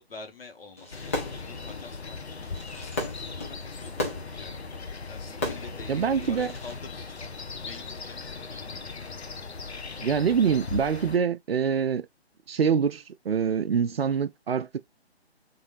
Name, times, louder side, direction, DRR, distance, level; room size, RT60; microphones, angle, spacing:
voice 1, 0.0-4.7 5.0-7.3 7.6-8.5 9.4-9.6, left 4 dB, 60° left, 1.2 m, -48 dB
Fireworks, 0.8-6.8, left 2 dB, 15° left, 0.6 m, -37 dB
sound 1, 0.9-11.2, left 4 dB, 80° left, 0.7 m, -38 dB
voice 2, 5.9-6.5 10.0-12.0 12.5-14.8, right 7 dB, 65° right, 0.5 m, -25 dB
3.8 x 2.6 x 3.0 m
figure-of-eight pair, 145°, 33 cm